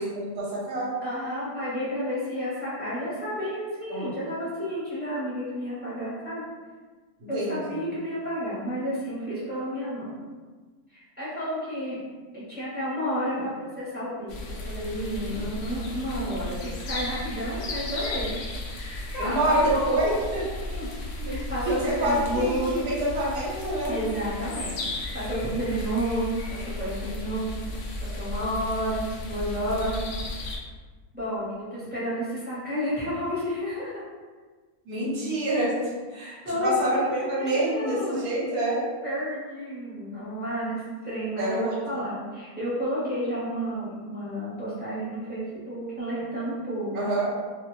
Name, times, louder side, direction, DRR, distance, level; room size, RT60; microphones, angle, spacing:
voice 1, 0.0-0.9 3.9-4.1 7.2-7.8 19.2-20.4 20.9-21.3 21.7-23.9 34.8-36.4 36.6-38.8 41.4-41.7 46.9-47.3, right 1 dB, 80° right, -6 dB, 1.3 m, -27 dB
voice 2, 1.0-6.4 7.3-10.1 10.9-12.0 12.3-18.4 18.8-19.8 20.6-20.9 21.3-22.9 23.9-27.6 28.0-30.0 31.1-34.0 36.4-38.3 39.0-47.1, equal, 10° right, -11 dB, 0.9 m, -31 dB
sound 1, 14.3-30.6, left 2 dB, 70° left, 0.6 m, -35 dB
2.5 x 2.4 x 3.0 m, 1.4 s
omnidirectional pair, 1.5 m